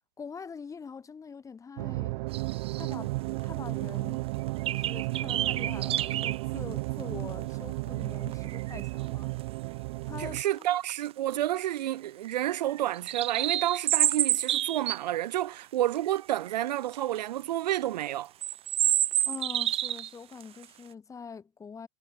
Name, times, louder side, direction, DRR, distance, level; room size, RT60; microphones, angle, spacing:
voice 1, 0.2-2.2 2.7-4.2 4.7-9.3 10.0-10.4 19.2-21.9, left 5 dB, 15° left, 5.2 m, -44 dB
sound 1, 1.8-10.4, right 23 dB, 60° right, 3.7 m, -33 dB
sound 2, 2.3-2.9 3.4-3.5 3.9-4.0 4.6-6.4 7.0-7.1 8.3-8.9 10.4-10.6 10.9-11.0 11.3-11.8 12.2-15.0 15.9-16.2 16.5-17.2 17.7-17.8 18.4-20.1 20.4-20.6, right 12 dB, 25° right, 1.4 m, -29 dB
voice 2, 10.2-18.3, right 13 dB, 85° right, 3.4 m, -30 dB
supercardioid pair, 145°, 21 cm